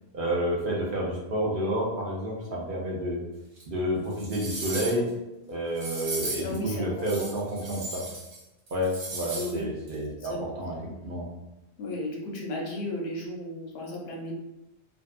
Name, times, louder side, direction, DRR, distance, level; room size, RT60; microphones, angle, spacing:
voice 1, 0.1-3.2 3.7-5.1 5.5-8.0 8.7-10.8 11.0-11.2, equal, 55° right, -3 dB, 0.7 m, -30 dB
sound 1, 3.6-3.7 4.1-5.1 5.7-6.6 7.0-8.4 8.7-9.5 9.9-10.0, right 2 dB, 90° right, 1.1 m, -36 dB
voice 2, 6.4-7.3 9.3-9.7 9.9-10.5 10.8-10.9 11.8-14.3, left 1 dB, 70° left, -1 dB, 0.8 m, -35 dB
2.6 x 2.3 x 2.3 m, 0.94 s
omnidirectional pair, 1.1 m